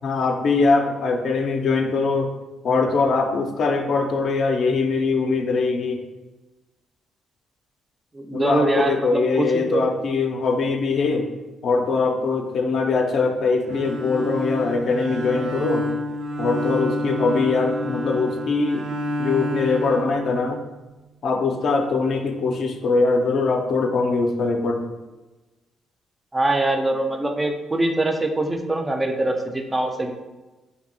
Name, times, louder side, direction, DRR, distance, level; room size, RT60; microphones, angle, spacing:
voice 1, 0.0-2.3 2.6-6.0 8.3-11.3 11.6-15.9 16.4-18.9 19.2-20.6 21.2-24.9, left 4 dB, 60° left, 4 dB, 0.3 m, -22 dB
voice 2, 8.1-9.8 26.3-30.1, right 2 dB, 20° right, 4 dB, 0.3 m, -23 dB
Bowed string instrument, 13.6-20.8, left 1 dB, 85° right, 0.4 m, -29 dB
2.7 x 2.6 x 2.6 m, 1.1 s
cardioid pair, 90°, 0 cm